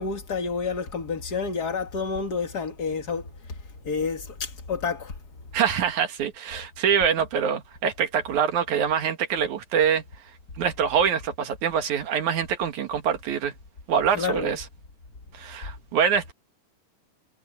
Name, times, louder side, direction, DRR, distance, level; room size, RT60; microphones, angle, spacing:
voice 1, 0.0-3.3 3.8-5.1 14.1-14.5, left 5 dB, 35° left, 1.9 m, -29 dB
voice 2, 5.5-10.0 10.6-13.5 13.9-14.6 15.3-16.3, right 7 dB, 70° right, 2.9 m, -24 dB
omnidirectional pair, 3.6 m